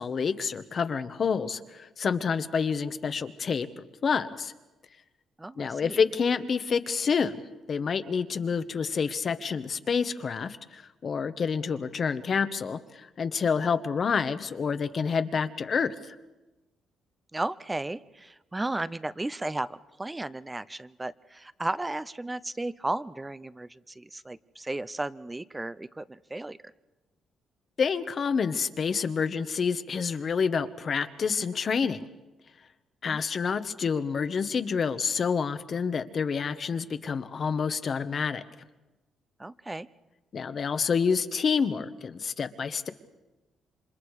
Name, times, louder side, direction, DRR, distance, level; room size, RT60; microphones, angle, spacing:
voice 1, 0.0-3.7 4.0-4.5 5.6-7.4 7.7-16.1 27.8-32.1 33.0-38.4 40.3-42.9, left 6 dB, 50° left, 10 dB, 1.2 m, -28 dB
voice 2, 5.4-6.0 17.3-26.7 33.0-33.2 39.4-39.9, right 2 dB, 15° right, 16 dB, 0.7 m, -34 dB
28.0 x 26.0 x 4.9 m, 1.1 s
cardioid pair, 90°, 0 cm